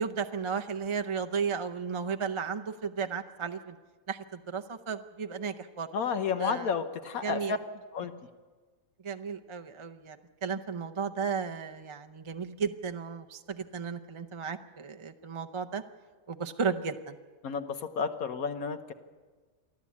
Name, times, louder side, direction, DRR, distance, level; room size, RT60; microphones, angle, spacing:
voice 1, 0.0-3.8 4.1-5.9 6.4-6.7 7.2-7.5 9.0-10.2 10.4-15.8 16.3-17.2, right 6 dB, 30° right, 7 dB, 0.5 m, -34 dB
voice 2, 5.9-7.6 7.9-8.1 17.4-18.9, left 6 dB, 80° left, 7 dB, 1.4 m, -31 dB
28.5 x 11.5 x 8.4 m, 1.4 s
omnidirectional pair, 1.5 m